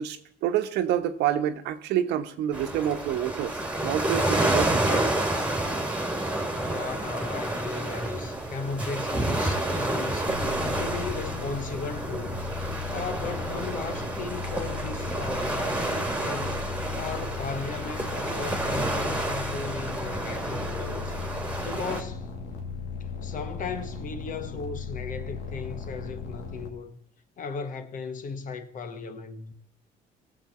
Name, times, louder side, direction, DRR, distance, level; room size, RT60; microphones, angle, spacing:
voice 1, 0.0-5.0, right 10 dB, 85° right, 1.2 m, -28 dB
sound 1, 2.5-22.0, right 1 dB, 10° right, 2.1 m, -29 dB
voice 2, 6.6-12.4 12.9-16.6 17.0-21.2 21.6-22.3 23.2-27.0 27.4-29.5, left 4 dB, 50° left, 1.4 m, -36 dB
sound 2, 10.3-26.7, left 5 dB, 75° left, 2.2 m, -37 dB
18.5 x 7.3 x 4.3 m
cardioid pair, 110°, 17 cm